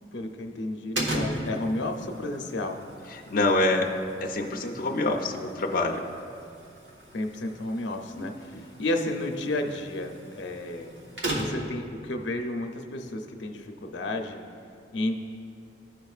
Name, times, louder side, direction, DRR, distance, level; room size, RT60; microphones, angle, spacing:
voice 1, 0.1-2.7 7.1-10.9 11.3-14.4 14.9-15.2, left 1 dB, 90° left, 4 dB, 0.7 m, -32 dB
sound 1, 0.9-11.8, right 1 dB, 80° right, 1.3 m, -38 dB
voice 2, 1.1-1.6 3.1-3.9 4.2-6.0, left 2 dB, 50° left, 0 dB, 0.5 m, -26 dB
14.5 x 5.2 x 2.4 m, 2.4 s
head